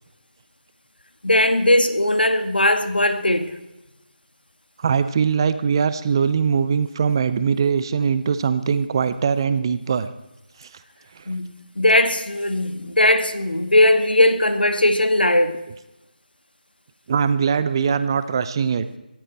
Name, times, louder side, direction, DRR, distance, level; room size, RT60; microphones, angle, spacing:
voice 1, 1.2-3.5 11.3-15.6, left 1 dB, 80° left, 1.8 m, -19 dB
voice 2, 4.8-10.1 10.6-10.7 11.1-11.2 17.1-18.9, right 6 dB, 30° right, 0.7 m, -21 dB
18.0 x 15.0 x 4.2 m
figure-of-eight pair, 155°, 5 cm